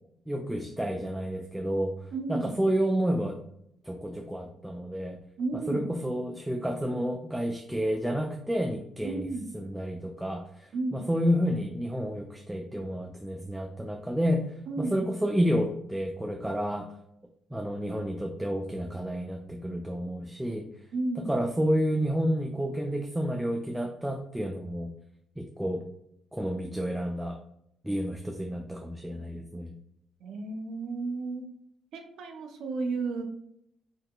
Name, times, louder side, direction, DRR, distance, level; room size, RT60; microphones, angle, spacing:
voice 1, 0.3-1.9 2.3-3.4 3.8-5.2 5.7-9.3 9.5-16.9 17.5-20.7 21.2-24.9 25.4-25.8 26.3-27.4 27.8-29.8, equal, 5° right, 3 dB, 0.3 m, -30 dB
voice 2, 2.1-2.5 5.4-5.9 9.0-9.5 10.7-11.1 14.7-15.1 20.9-21.3 30.2-31.5 31.9-33.2, right 3 dB, 75° right, 5 dB, 0.6 m, -33 dB
3.8 x 2.7 x 2.2 m, 0.75 s
cardioid pair, 90°, 0 cm